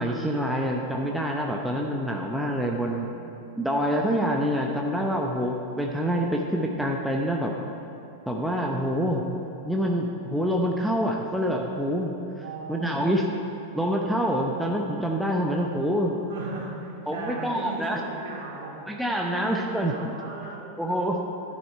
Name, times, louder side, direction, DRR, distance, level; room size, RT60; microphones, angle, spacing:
voice 1, 0.0-3.1 3.6-7.5 8.3-9.2 9.6-13.3 13.7-16.2 17.1-18.0 18.9-20.1 20.8-21.2, equal, ahead, 0 dB, 0.9 m, -26 dB
voice 2, 2.6-3.4 12.4-13.4 16.3-18.7 19.3-20.6, right 3 dB, 55° right, -3 dB, 2.9 m, -38 dB
12.5 x 10.5 x 4.5 m, 2.8 s
figure-of-eight pair, 90°, 0 cm